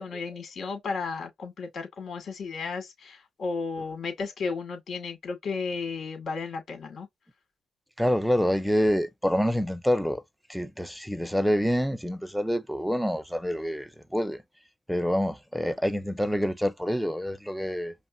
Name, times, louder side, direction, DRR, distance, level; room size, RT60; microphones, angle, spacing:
voice 1, 0.0-7.1, left 4 dB, 55° left, 2.2 m, -34 dB
voice 2, 8.0-10.2 10.5-14.4 14.9-17.9, equal, ahead, 0.6 m, -27 dB
5.2 x 2.2 x 2.6 m
cardioid pair, 90°, 0 cm